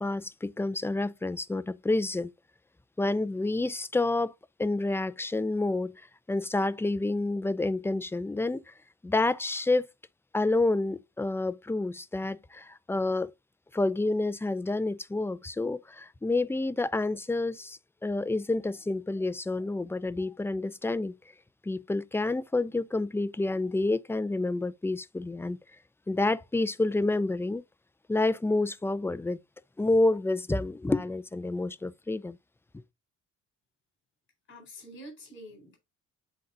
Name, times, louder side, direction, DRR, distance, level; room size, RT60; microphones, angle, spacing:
voice 1, 0.0-2.3 3.0-4.3 4.6-5.9 6.3-8.7 9.0-9.9 10.3-13.3 13.7-21.1 21.7-25.6 26.1-27.6 28.1-29.4 29.8-32.4, left 2 dB, 10° left, 0.4 m, -29 dB
voice 2, 34.5-35.8, equal, 40° left, 4.2 m, -46 dB
7.9 x 4.0 x 3.7 m
cardioid pair, 90°, 30 cm